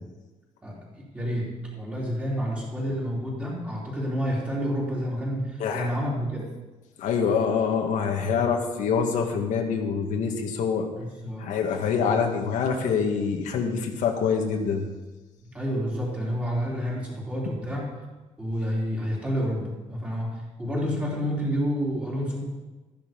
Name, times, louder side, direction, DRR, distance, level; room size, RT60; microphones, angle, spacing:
voice 1, 0.6-6.5 8.2-8.5 11.0-11.5 12.0-12.2 13.7-13.9 15.5-17.9 18.4-22.5, equal, 10° right, -5 dB, 3.7 m, -29 dB
voice 2, 7.0-10.9 11.4-14.8, left 6 dB, 75° left, 2 dB, 1.7 m, -25 dB
14.0 x 10.5 x 5.3 m, 1.2 s
cardioid pair, 180°, 13 cm